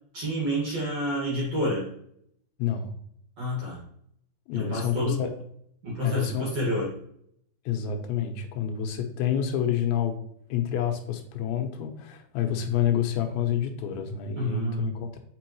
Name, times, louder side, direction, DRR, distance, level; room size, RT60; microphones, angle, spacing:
voice 1, 0.1-1.9 3.4-3.8 4.5-5.2 5.8-6.9 14.4-15.0, equal, 50° right, -4 dB, 2.0 m, -29 dB
voice 2, 2.6-2.9 4.5-5.3 6.0-6.5 7.7-10.1 10.5-15.2, left 9 dB, 85° left, 4 dB, 3.2 m, -28 dB
6.8 x 5.4 x 3.0 m, 0.70 s
omnidirectional pair, 5.2 m